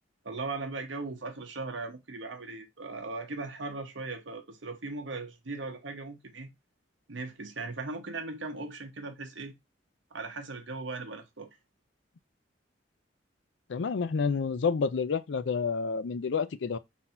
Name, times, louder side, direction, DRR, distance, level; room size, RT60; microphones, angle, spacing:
voice 1, 0.2-6.5 7.1-9.5 10.1-11.5, right 3 dB, 80° right, 1.0 m, -38 dB
voice 2, 13.7-16.8, left 5 dB, 70° left, 0.4 m, -29 dB
4.2 x 2.7 x 4.2 m
head